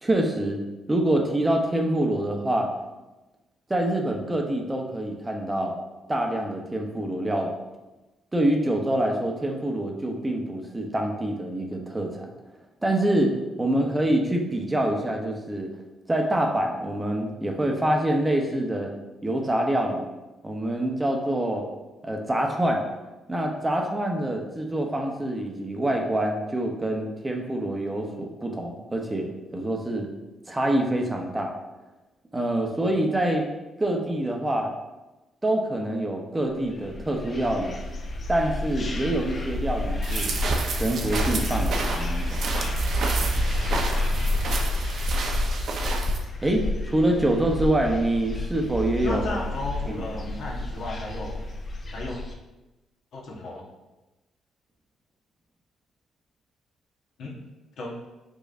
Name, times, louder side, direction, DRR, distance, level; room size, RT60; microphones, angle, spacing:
voice 1, 0.0-0.6 0.9-2.7 3.7-5.8 6.1-7.5 8.3-12.3 12.8-15.7 16.1-18.9 19.2-20.0 20.4-21.6 22.0-22.8 23.3-30.1 30.5-31.5 32.3-33.5 33.8-34.7 35.4-37.8 38.3-40.3 40.7-42.4 46.4-49.2 49.9-50.1, right 1 dB, 15° right, 2 dB, 0.7 m, -26 dB
sound 1, 36.6-52.3, left 1 dB, 40° left, 0.7 m, -29 dB
sound 2, 40.0-46.2, right 3 dB, 60° right, 0.6 m, -30 dB
voice 2, 49.0-51.4 51.9-52.2 53.1-53.7 57.2-57.3 57.8-57.9, left 2 dB, 70° left, -2 dB, 1.1 m, -34 dB
5.0 x 3.9 x 2.5 m, 1.1 s
cardioid pair, 90°, 0 cm